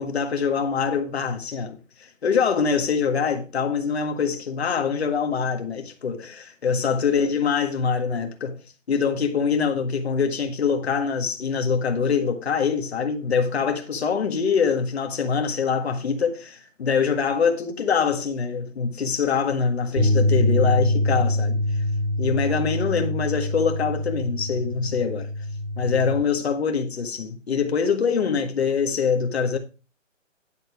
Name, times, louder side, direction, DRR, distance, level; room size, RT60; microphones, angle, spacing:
voice 1, 0.0-8.6 8.9-21.6 22.2-25.3 25.8-29.6, left 6 dB, 55° left, 1.8 m, -24 dB
sound 1, 20.0-26.2, left 1 dB, 85° right, 4.6 m, -24 dB
10.5 x 6.6 x 4.9 m
hypercardioid pair, 175°, 39 cm